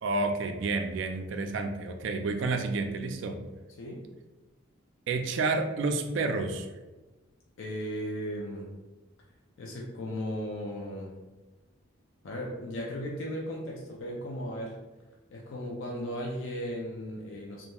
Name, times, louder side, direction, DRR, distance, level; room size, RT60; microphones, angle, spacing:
voice 1, 0.0-3.4 5.1-6.7, right 3 dB, 60° right, 6 dB, 0.3 m, -30 dB
voice 2, 7.6-8.7 9.6-11.1 12.2-14.8 15.3-17.6, equal, 70° left, -2 dB, 0.4 m, -36 dB
2.9 x 2.4 x 2.2 m, 1.1 s
head